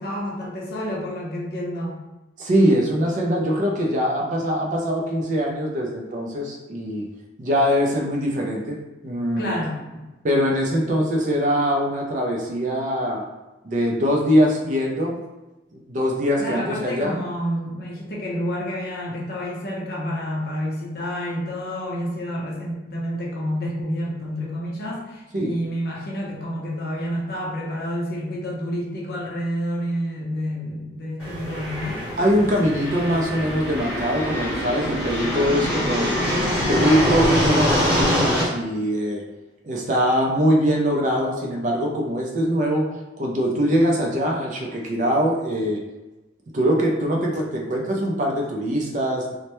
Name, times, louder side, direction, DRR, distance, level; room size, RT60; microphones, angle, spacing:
voice 1, 0.0-2.0 9.4-10.1 16.4-32.0, equal, 55° left, -3 dB, 0.6 m, -29 dB
voice 2, 2.4-7.0 7.4-9.5 10.2-13.2 13.6-15.2 15.7-17.2 25.3-25.6 32.1-36.1 36.5-39.2 39.6-42.9 43.2-45.8 46.5-49.3, equal, 40° right, -1 dB, 0.4 m, -22 dB
sound 1, 31.2-38.4, equal, 5° right, 0.9 m, -24 dB
2.1 x 2.0 x 2.9 m, 1.1 s
head